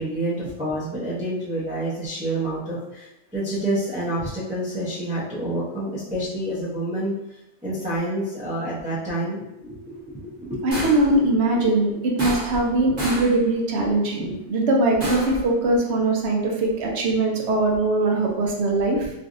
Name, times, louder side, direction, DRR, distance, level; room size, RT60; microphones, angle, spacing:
voice 1, 0.0-7.1 7.6-10.9 11.2-11.6 11.9-12.0 14.3-14.4, right 1 dB, 10° right, -10 dB, 0.4 m, -28 dB
voice 2, 10.6-19.1, right 2 dB, 60° right, 0 dB, 0.7 m, -21 dB
sound 1, 10.7-11.2 12.2-12.7 13.0-13.4 15.0-15.4, right 1 dB, 35° right, 1.0 m, -29 dB
3.2 x 2.6 x 2.5 m, 0.91 s
omnidirectional pair, 1.5 m